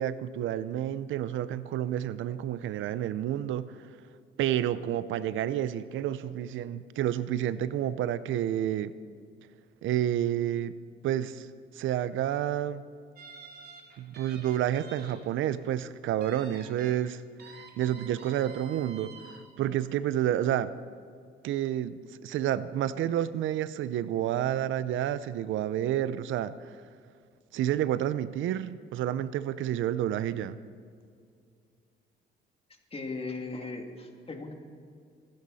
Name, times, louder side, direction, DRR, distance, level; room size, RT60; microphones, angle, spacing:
voice 1, 0.0-3.9 4.4-8.9 9.8-10.7 11.0-11.5 11.7-12.8 14.0-20.7 21.4-21.9 22.2-26.8 27.5-30.6, right 11 dB, 80° right, 15 dB, 0.6 m, -30 dB
sound 1, 13.2-15.1 15.5-15.6 16.2-17.0 17.4-19.4, right 4 dB, 55° right, 3.1 m, -49 dB
voice 2, 32.9-34.5, left 3 dB, 30° left, 3 dB, 2.4 m, -37 dB
25.5 x 12.0 x 4.2 m, 2.2 s
cardioid pair, 90°, 20 cm